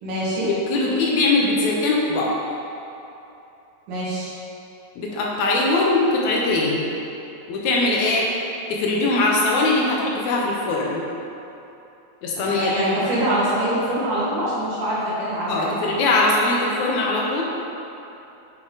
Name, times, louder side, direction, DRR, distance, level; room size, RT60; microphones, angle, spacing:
voice 1, 0.0-0.5 3.9-4.3 12.4-16.0, right 1 dB, 85° right, -9 dB, 3.1 m, -24 dB
voice 2, 0.7-2.3 5.0-6.9 7.5-8.3 8.7-11.0 12.2-12.7 15.5-17.4, left 2 dB, 75° left, -2 dB, 2.1 m, -21 dB
8.2 x 3.7 x 3.8 m, 2.9 s
omnidirectional pair, 3.5 m